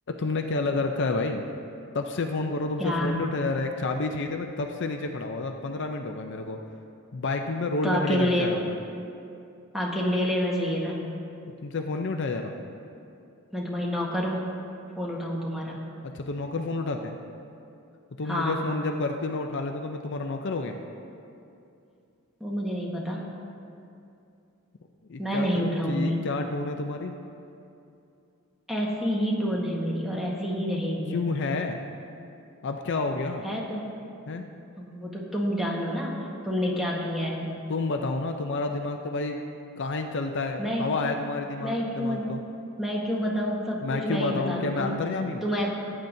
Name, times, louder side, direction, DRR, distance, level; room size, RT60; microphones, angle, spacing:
voice 1, 0.1-1.4 1.9-6.6 7.1-8.8 11.6-12.5 16.1-17.1 18.2-20.8 25.1-27.2 31.1-31.8 32.6-33.4 34.3-34.5 37.7-39.4 39.8-42.4 43.8-45.4, left 3 dB, 55° left, 4 dB, 0.5 m, -29 dB
voice 2, 2.8-3.1 7.8-8.5 9.7-11.0 13.5-14.5 15.0-15.8 18.3-18.6 22.4-23.3 25.2-26.1 28.7-31.2 33.4-33.9 34.8-37.6 40.6-40.9 41.6-42.4 42.8-44.9 45.4-45.7, equal, ahead, -4 dB, 1.3 m, -28 dB
17.0 x 8.7 x 2.7 m, 2.6 s
head